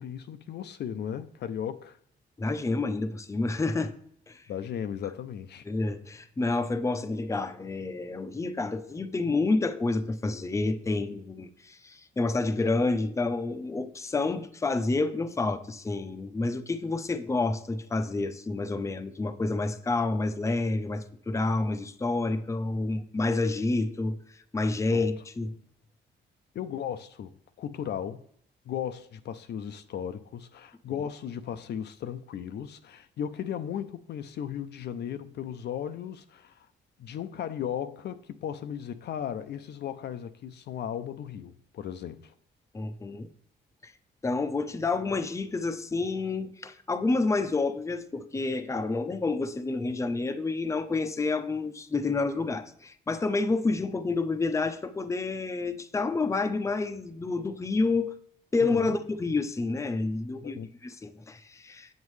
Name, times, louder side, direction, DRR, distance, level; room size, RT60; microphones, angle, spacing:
voice 1, 0.0-2.0 4.5-5.7 24.9-25.1 26.5-27.3 27.6-28.2 28.7-36.7 37.0-42.3 58.6-58.9 60.4-60.7, left 9 dB, 65° left, 0.5 m, -36 dB
voice 2, 2.4-3.9 4.3-4.4 5.7-24.2 24.5-25.5 30.9-31.0 42.7-43.3 43.8-43.9 44.2-58.1 58.5-61.9, left 3 dB, 15° left, 0.6 m, -29 dB
7.2 x 7.2 x 3.2 m
cardioid pair, 95°, 19 cm